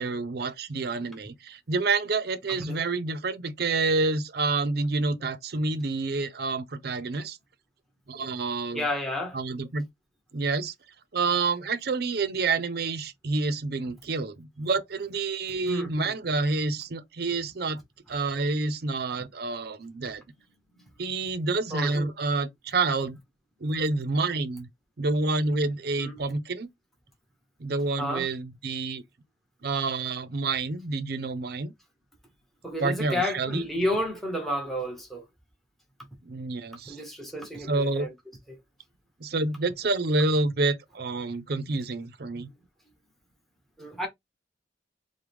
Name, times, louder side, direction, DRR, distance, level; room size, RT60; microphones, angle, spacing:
voice 1, 0.0-7.4 8.1-8.9 9.3-9.9 10.3-10.7 11.1-17.8 18.1-20.2 21.0-23.2 23.6-24.7 25.0-26.7 27.6-29.0 29.6-31.7 32.8-33.6 36.3-37.0 37.7-38.1 39.2-42.5, right 3 dB, 60° right, 0.6 m, -28 dB
voice 2, 8.7-9.4 15.7-16.1 21.7-22.1 26.0-26.1 28.0-28.3 32.6-35.2 36.9-38.1 38.5-38.6 43.8-44.1, left 1 dB, ahead, 1.0 m, -31 dB
4.6 x 2.2 x 3.4 m
head